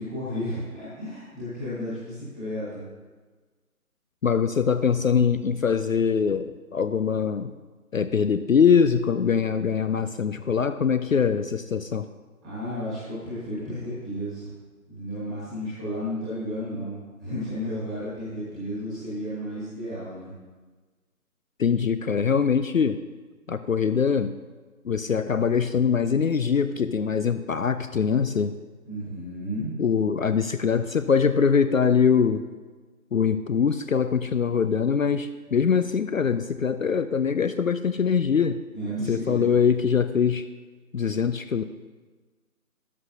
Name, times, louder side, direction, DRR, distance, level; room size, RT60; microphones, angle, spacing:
voice 1, 0.0-2.9 12.4-14.5 14.9-20.3 28.8-29.7 38.7-39.4, equal, 5° right, -12 dB, 1.6 m, -33 dB
voice 2, 4.2-7.5 7.9-12.1 21.6-23.0 23.5-24.4 24.8-28.5 29.8-32.4 33.1-38.6 39.1-40.5 40.9-41.6, left 6 dB, 60° left, 11 dB, 0.5 m, -23 dB
13.5 x 11.5 x 2.8 m, 1.3 s
figure-of-eight pair, 175°, 45 cm